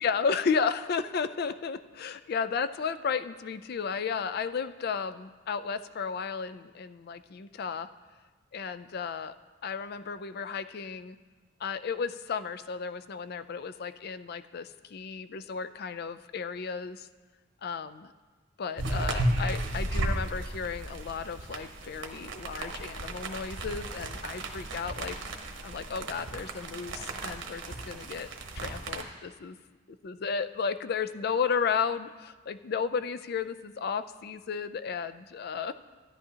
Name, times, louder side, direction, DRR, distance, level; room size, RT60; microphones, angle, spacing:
voice 1, 0.0-7.9 8.5-9.3 9.6-11.2 11.6-17.1 17.6-18.1 18.6-25.2 25.6-28.3 28.5-29.6 29.9-35.7, left 6 dB, 55° left, 12 dB, 0.4 m, -33 dB
sound 1, 18.8-29.0, right 1 dB, 85° right, 1.0 m, -34 dB
13.5 x 10.5 x 2.8 m, 1.3 s
head